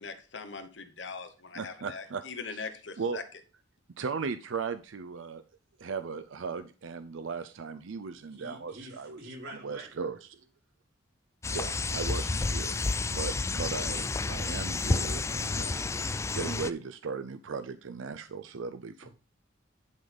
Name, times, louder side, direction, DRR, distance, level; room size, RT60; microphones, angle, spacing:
voice 1, 0.0-3.2, left 4 dB, 65° left, 8 dB, 1.2 m, -41 dB
voice 2, 1.5-2.2 2.5-2.7 3.0-3.2 4.0-5.4 5.8-9.2 9.6-10.4 11.5-15.8 16.3-19.1, right 5 dB, 85° right, 10 dB, 0.5 m, -37 dB
voice 3, 8.3-9.9 19.0-19.1, right 1 dB, 60° right, -3 dB, 4.0 m, -46 dB
sound 1, 11.4-16.7, left 3 dB, 15° left, 0.3 m, -30 dB
10.5 x 4.0 x 5.3 m, 0.34 s
head